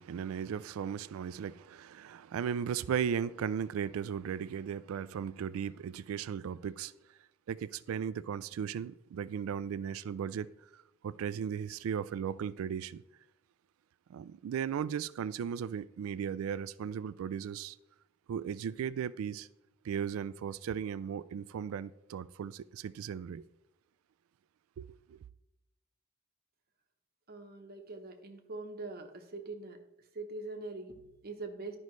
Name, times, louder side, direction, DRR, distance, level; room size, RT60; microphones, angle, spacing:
voice 1, 0.0-6.9 7.5-10.5 10.7-13.0 14.1-17.8 18.3-19.5 19.8-23.4 24.8-25.2, right 8 dB, 80° right, 0.3 m, -36 dB
voice 2, 27.3-31.8, right 3 dB, 45° right, 0.9 m, -43 dB
11.5 x 5.3 x 3.1 m
head